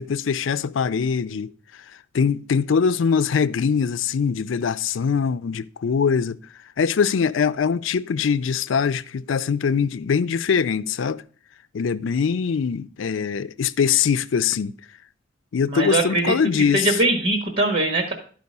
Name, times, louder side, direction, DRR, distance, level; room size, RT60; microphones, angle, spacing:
voice 1, 0.0-1.5 2.1-6.4 6.8-11.2 11.7-14.7 15.5-17.0, left 6 dB, 90° left, 0.4 m, -22 dB
voice 2, 15.7-16.3 16.7-18.1, right 2 dB, 55° right, 1.6 m, -21 dB
11.5 x 5.1 x 5.3 m
head